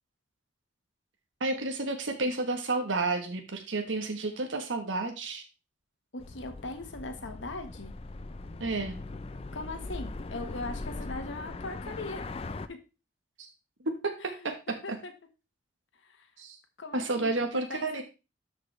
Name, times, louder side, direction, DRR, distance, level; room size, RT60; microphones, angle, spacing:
voice 1, 1.4-5.4 8.6-9.0 13.4-13.5 13.8-14.5 14.9-15.0 16.4-16.6 16.9-18.0, right 2 dB, 90° right, 5 dB, 1.2 m, -31 dB
voice 2, 6.1-7.9 9.5-12.3 12.7-12.8 14.2-15.1 16.0-16.3 16.8-18.0, left 2 dB, 85° left, 5 dB, 1.3 m, -40 dB
sound 1, 6.2-12.7, left 2 dB, 30° left, 0.4 m, -40 dB
12.5 x 5.1 x 3.2 m, 0.29 s
head